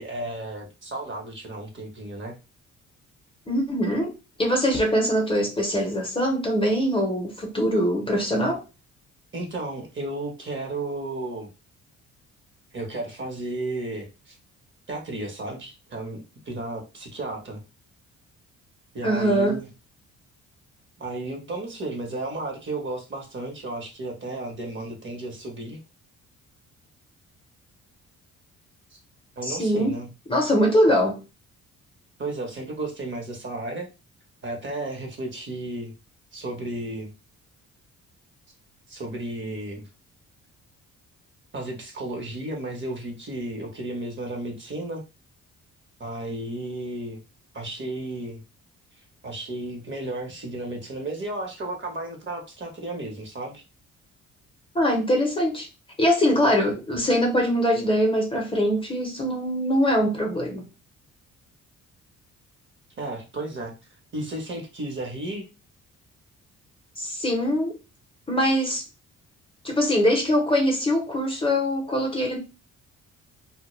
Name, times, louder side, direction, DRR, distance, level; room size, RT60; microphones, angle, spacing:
voice 1, 0.0-2.4 9.3-11.5 12.7-14.4 14.9-17.6 18.9-19.7 21.0-25.8 28.9-29.0 29.4-30.1 32.2-33.9 34.4-35.9 36.3-37.1 38.9-39.9 41.5-45.0 46.0-47.2 47.5-48.4 49.2-53.6 63.0-63.8 64.1-65.4, right 2 dB, 40° right, 0.9 m, -33 dB
voice 2, 3.5-4.1 4.4-8.6 19.0-19.6 29.4-29.9 30.3-31.2 54.7-55.7 56.0-60.6 67.0-67.8 68.3-68.8 69.6-72.4, equal, 20° left, 0.7 m, -22 dB
2.1 x 2.0 x 3.0 m
cardioid pair, 90°, 30 cm